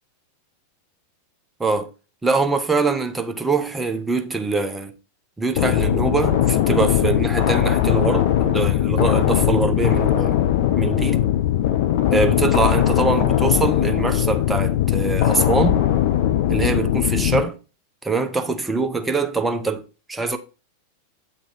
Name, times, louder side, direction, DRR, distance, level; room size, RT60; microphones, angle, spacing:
voice 1, 2.2-4.9 5.4-10.4 10.8-11.2 12.1-15.8 16.5-17.6 18.0-19.8 20.1-20.4, right 4 dB, 10° right, 0.8 m, -23 dB
sound 1, 5.6-17.4, left 12 dB, 50° left, 0.9 m, -20 dB
8.5 x 3.8 x 4.8 m
figure-of-eight pair, 90°, 0 cm